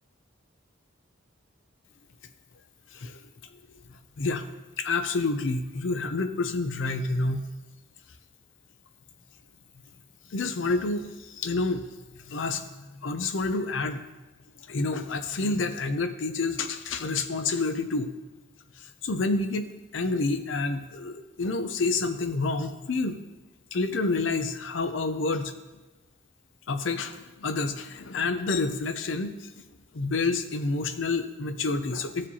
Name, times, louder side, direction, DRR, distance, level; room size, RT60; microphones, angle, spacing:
voice 1, 4.8-7.5 10.3-11.9 12.2-14.0 14.7-18.1 18.8-23.2 23.7-25.5 26.7-29.5 29.9-32.3, left 3 dB, 65° left, 10 dB, 0.5 m, -28 dB
14.5 x 4.9 x 2.8 m, 1.1 s
head